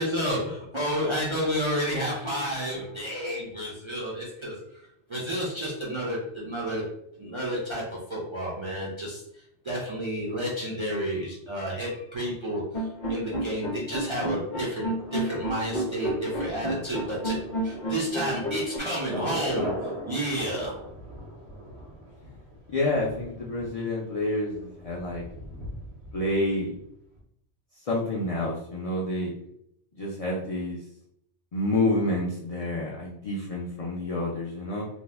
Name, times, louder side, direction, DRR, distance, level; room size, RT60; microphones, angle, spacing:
voice 1, 0.0-4.6 5.1-6.8 7.2-9.2 9.6-12.6 13.1-20.7, equal, 45° right, -5 dB, 0.4 m, -30 dB
sound 1, 12.7-18.8, right 1 dB, 45° left, 0.8 m, -31 dB
Thunder, 15.0-26.8 27.1-27.2, equal, 65° right, 1.0 m, -41 dB
voice 2, 22.7-25.2 26.1-26.7 27.8-29.3 29.9-30.8 31.5-34.9, left 1 dB, 65° left, -4 dB, 0.3 m, -28 dB
2.6 x 2.0 x 3.3 m, 0.74 s
omnidirectional pair, 1.2 m